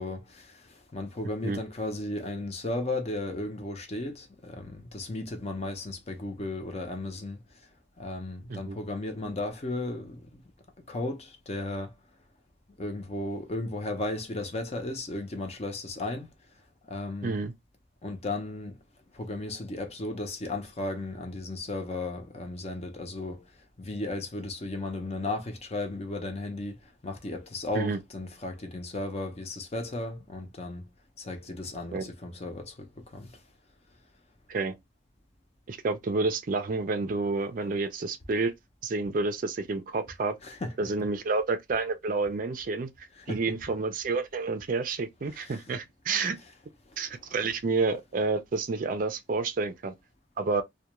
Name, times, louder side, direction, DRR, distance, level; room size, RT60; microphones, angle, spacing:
voice 1, 0.0-7.4 8.0-10.4 10.9-11.9 12.8-16.3 16.8-17.4 18.0-18.8 19.1-23.4 23.8-30.9 31.2-33.4 40.4-40.9 43.2-43.4 45.3-45.6 46.9-47.2, left 2 dB, 35° left, 0.5 m, -35 dB
voice 2, 17.2-17.5 27.7-28.0 31.9-32.0 34.5-34.7 35.7-38.5 38.8-40.4 40.8-46.4 47.0-49.9 50.4-50.6, right 3 dB, 45° right, 0.4 m, -29 dB
2.3 x 2.2 x 2.8 m
head